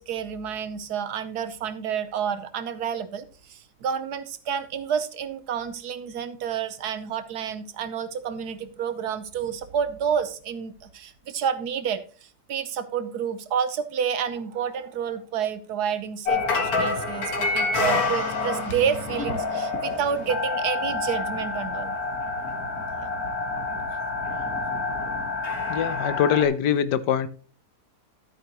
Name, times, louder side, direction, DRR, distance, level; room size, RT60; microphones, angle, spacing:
voice 1, 0.0-16.4 16.8-22.0 23.0-23.1 23.7-23.9, right 7 dB, 70° right, 1.4 m, -29 dB
sound 1, 16.2-26.4, left 3 dB, 60° left, 2.1 m, -27 dB
voice 2, 25.7-27.3, left 8 dB, 85° left, 1.4 m, -23 dB
12.5 x 8.5 x 3.0 m
omnidirectional pair, 1.8 m